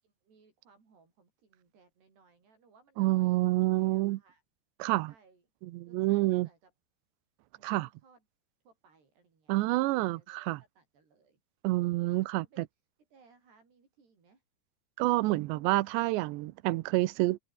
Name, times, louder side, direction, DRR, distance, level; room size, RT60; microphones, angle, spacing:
voice 1, 0.0-4.4 5.1-5.4 5.9-6.7 7.6-8.2 8.7-11.4 12.1-12.7 13.1-14.4, right 4 dB, 65° right, 8.8 m, -64 dB
voice 2, 3.0-4.2 4.8-5.1 5.6-6.5 7.6-7.9 9.5-10.6 11.6-12.7 15.0-17.4, right 19 dB, 80° right, 2.9 m, -28 dB
open air
omnidirectional pair, 5.2 m